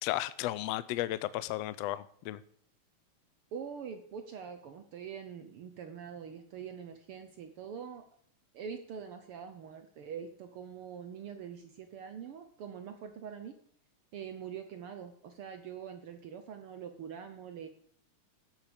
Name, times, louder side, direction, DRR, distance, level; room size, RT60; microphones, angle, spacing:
voice 1, 0.0-2.4, left 15 dB, 80° left, 16 dB, 1.5 m, -34 dB
voice 2, 3.5-8.0 8.5-13.5 14.1-17.7, right 7 dB, 70° right, 7 dB, 1.4 m, -44 dB
13.5 x 9.2 x 5.2 m, 0.63 s
omnidirectional pair, 3.4 m